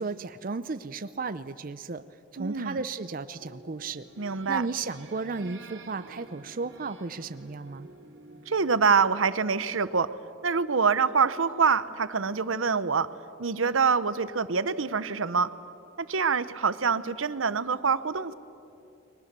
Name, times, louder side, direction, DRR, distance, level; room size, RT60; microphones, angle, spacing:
voice 1, 0.0-2.0 2.3-7.9, right 4 dB, 45° right, 12 dB, 0.6 m, -34 dB
voice 2, 2.4-2.8 4.2-4.6 8.5-10.1 10.4-13.1 13.4-15.5 16.0-18.3, right 5 dB, 85° right, 15 dB, 0.9 m, -25 dB
sound 1, 3.3-9.5, right 2 dB, 65° right, 2.7 m, -50 dB
30.0 x 21.5 x 6.8 m, 2.9 s
head